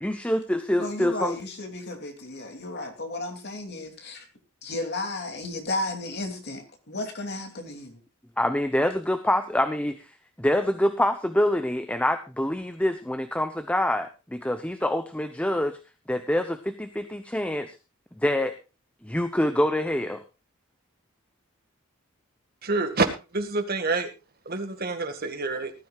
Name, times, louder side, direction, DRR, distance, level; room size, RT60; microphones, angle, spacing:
voice 1, 0.0-1.4 8.4-10.1 10.4-15.8 16.1-17.8 18.2-18.6 19.0-20.2, left 1 dB, 5° left, 9 dB, 0.8 m, -26 dB
voice 2, 0.8-4.3 4.6-8.0, left 2 dB, 50° left, 4 dB, 2.9 m, -33 dB
voice 3, 22.6-24.1 24.5-25.7, right 3 dB, 45° right, 7 dB, 1.9 m, -27 dB
19.5 x 12.5 x 2.5 m, 0.28 s
head